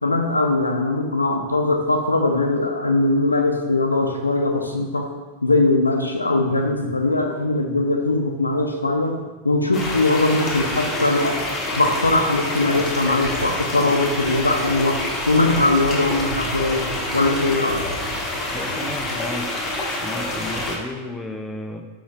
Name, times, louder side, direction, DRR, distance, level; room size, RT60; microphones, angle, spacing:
voice 1, 0.0-5.0 5.4-9.1 9.4-11.4 11.7-14.9 15.3-16.9 17.1-17.8, left 2 dB, 80° left, 3 dB, 0.5 m, -20 dB
sound 1, 9.7-20.8, left 1 dB, 25° left, 0.9 m, -27 dB
voice 2, 18.5-19.5 20.0-21.9, left 2 dB, 5° left, 3 dB, 0.4 m, -32 dB
4.5 x 4.0 x 2.8 m, 1.3 s
figure-of-eight pair, 90°, 0 cm